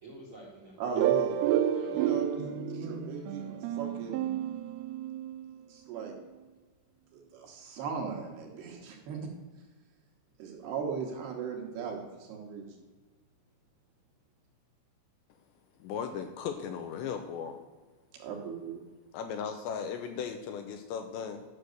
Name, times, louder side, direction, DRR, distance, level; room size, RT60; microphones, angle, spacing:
voice 1, 0.0-1.1 1.4-2.2 3.1-3.5, right 1 dB, 50° right, -3 dB, 1.6 m, -50 dB
voice 2, 0.8-1.4 1.9-4.3 5.7-6.2 7.1-9.3 10.4-12.7 18.1-18.8, right 6 dB, 70° right, 1 dB, 2.9 m, -38 dB
sound 1, 1.0-5.5, right 10 dB, 90° right, 3.2 m, -30 dB
voice 3, 15.8-17.6 19.1-21.4, left 7 dB, 80° left, 6 dB, 2.7 m, -37 dB
12.0 x 6.2 x 6.6 m, 1.3 s
omnidirectional pair, 5.6 m